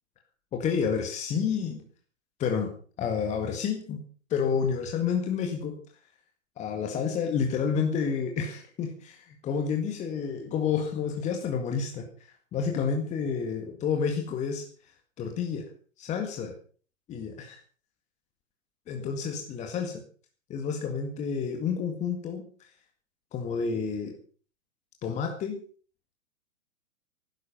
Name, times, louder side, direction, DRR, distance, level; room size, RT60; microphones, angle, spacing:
voice 1, 0.5-1.8 2.4-2.7 3.0-4.0 4.3-5.8 6.6-12.0 12.5-14.6 15.2-15.7 16.0-16.5 17.1-17.6 18.9-20.0 20.5-22.4 23.3-24.1 25.0-25.6, left 6 dB, 15° left, 3 dB, 1.9 m, -29 dB
15.0 x 12.5 x 5.7 m, 0.42 s
figure-of-eight pair, 115°, 40 cm